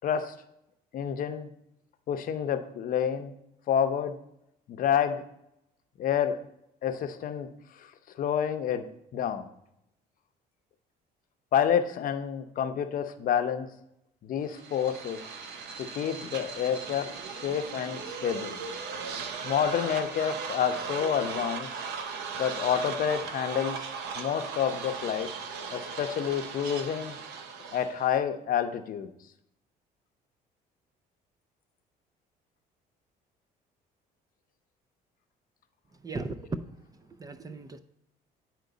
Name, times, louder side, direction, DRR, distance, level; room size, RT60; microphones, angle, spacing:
voice 1, 0.0-0.3 0.9-1.5 2.1-3.4 3.7-4.2 4.7-5.2 6.0-6.4 6.8-7.5 7.8-7.9 8.2-8.8 9.1-9.5 11.5-13.7 14.2-15.2 15.8-17.1 17.4-18.6 19.4-21.7 22.3-23.9 24.2-25.3 25.7-27.2 27.7-29.1, left 8 dB, 55° left, 8 dB, 0.7 m, -28 dB
sound 1, 14.5-28.1, right 5 dB, 80° right, 0.7 m, -38 dB
voice 2, 35.9-37.8, right 3 dB, 20° right, 10 dB, 0.4 m, -38 dB
9.2 x 4.5 x 3.9 m, 0.80 s
cardioid pair, 110°, 17 cm